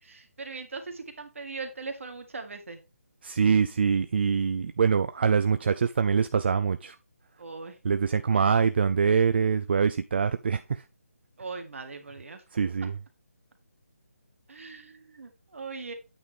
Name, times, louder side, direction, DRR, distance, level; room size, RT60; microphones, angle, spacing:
voice 1, 0.0-2.8 7.4-7.8 8.3-8.4 11.4-12.4 14.5-15.9, right 4 dB, 60° right, 1.9 m, -40 dB
voice 2, 3.2-6.9 7.8-10.8 12.5-12.9, right 6 dB, 45° right, 0.4 m, -24 dB
8.7 x 3.6 x 4.9 m
figure-of-eight pair, 150°, 8 cm